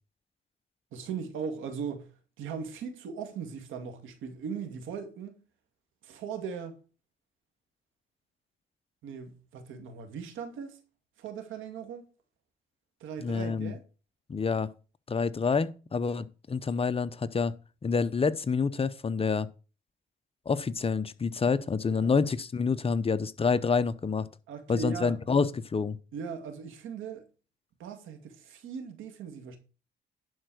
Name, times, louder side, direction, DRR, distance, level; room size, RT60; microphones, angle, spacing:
voice 1, 0.9-2.1 2.4-5.4 6.0-6.8 9.0-10.8 11.2-12.1 13.0-13.8 21.9-22.1 24.5-25.2 26.1-27.3 27.8-29.6, right 6 dB, 85° right, 2.3 m, -38 dB
voice 2, 13.2-13.7 14.3-14.7 15.1-17.5 17.8-19.5 20.5-24.3 24.7-26.0, left 5 dB, 30° left, 0.7 m, -28 dB
11.0 x 4.5 x 6.3 m
cardioid pair, 90°, 20 cm